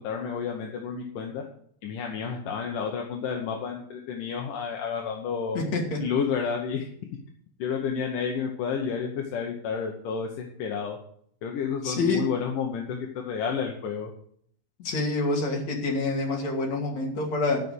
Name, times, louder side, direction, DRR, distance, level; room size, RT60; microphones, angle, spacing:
voice 1, 0.0-1.4 1.8-5.6 6.0-6.9 7.6-11.0 11.4-14.1, left 6 dB, 65° left, 1 dB, 2.3 m, -30 dB
voice 2, 5.6-6.0 11.8-12.2 14.8-17.6, left 3 dB, 45° left, -1 dB, 3.4 m, -27 dB
12.5 x 5.7 x 7.8 m, 0.65 s
omnidirectional pair, 4.8 m